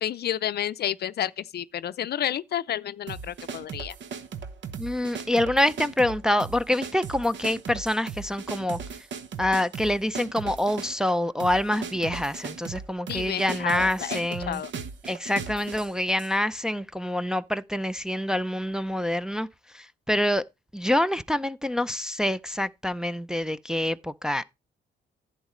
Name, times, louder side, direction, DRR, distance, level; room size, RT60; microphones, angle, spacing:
voice 1, 0.0-3.9 13.1-14.7, left 10 dB, 55° left, 0.5 m, -30 dB
sound 1, 3.1-16.4, right 6 dB, 65° right, 1.1 m, -38 dB
voice 2, 4.8-8.8 9.4-14.6 15.1-19.5 19.7-20.4 20.7-24.4, left 1 dB, 5° right, 0.5 m, -26 dB
11.0 x 8.1 x 3.1 m
cardioid pair, 90°, 20 cm